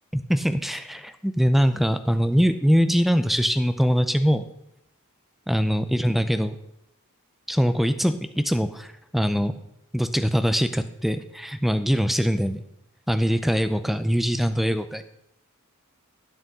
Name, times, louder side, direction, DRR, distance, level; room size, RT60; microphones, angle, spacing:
voice 1, 0.1-4.5 5.5-6.6 7.5-9.5 9.9-12.6 13.1-15.0, equal, ahead, 9 dB, 0.6 m, -22 dB
11.5 x 8.1 x 6.1 m, 0.81 s
head